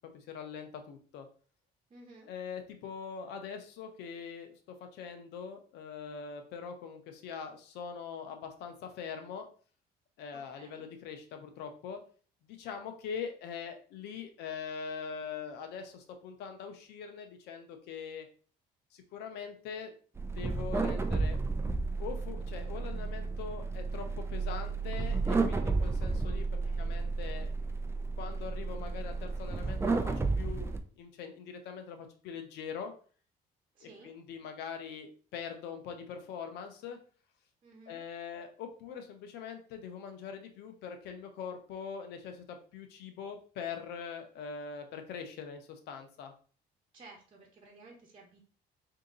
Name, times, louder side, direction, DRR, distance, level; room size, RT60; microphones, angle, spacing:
voice 1, 0.1-1.3 2.3-9.5 10.2-12.0 12.4-18.3 18.9-19.9 20.3-21.4 22.0-27.5 28.2-32.9 33.8-37.0 37.9-46.3, left 6 dB, 85° left, 6 dB, 0.8 m, -42 dB
voice 2, 1.9-2.3 10.3-10.9 26.2-26.3 26.6-26.9 33.7-34.1 37.6-38.0 46.9-48.4, right 3 dB, 30° right, -1 dB, 1.1 m, -55 dB
sound 1, 20.2-30.8, right 3 dB, 15° right, 0.5 m, -32 dB
3.8 x 2.8 x 3.8 m, 0.41 s
cardioid pair, 110°, 17 cm